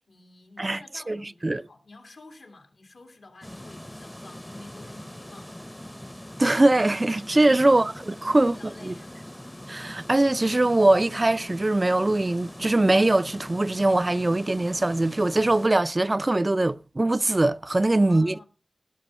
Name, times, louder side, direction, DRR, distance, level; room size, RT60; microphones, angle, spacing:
voice 1, 0.0-6.0 7.5-7.9 8.2-9.2 18.0-18.4, left 3 dB, 90° left, 2.9 m, -50 dB
sound 1, 3.4-15.7, left 1 dB, 15° left, 0.8 m, -42 dB
voice 2, 6.4-8.6 8.8-8.9 9.7-18.3, right 2 dB, 40° right, 0.5 m, -22 dB
17.5 x 6.5 x 5.5 m
cardioid pair, 40°, 0 cm